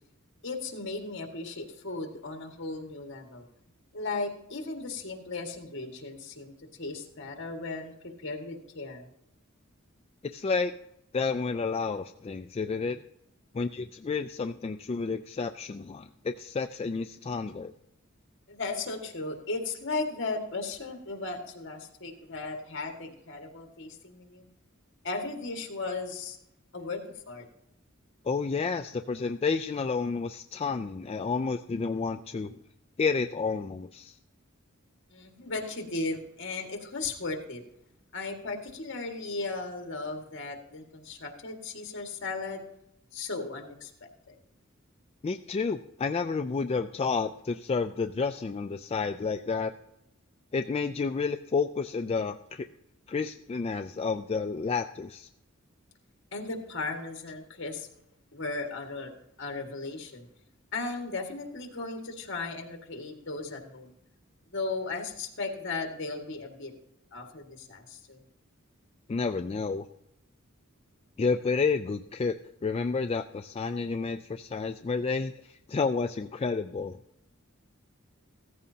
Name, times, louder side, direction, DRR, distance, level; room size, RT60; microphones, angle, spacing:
voice 1, 0.4-3.5 3.9-7.9 8.2-9.1 18.5-24.5 25.0-26.4 26.7-27.5 35.1-37.6 38.1-42.6 43.1-44.4 56.3-57.9 58.3-59.1 59.4-60.3 60.7-63.9 64.5-66.7 67.1-68.2, left 3 dB, 60° left, 3 dB, 1.9 m, -36 dB
voice 2, 10.3-10.7 11.1-13.0 13.5-17.7 28.3-32.6 33.0-34.1 45.2-49.7 50.5-52.7 53.1-55.3 69.1-69.9 71.2-72.4 72.6-75.3 75.7-77.0, left 4 dB, 30° left, 7 dB, 0.3 m, -30 dB
15.5 x 14.0 x 2.8 m, 0.80 s
head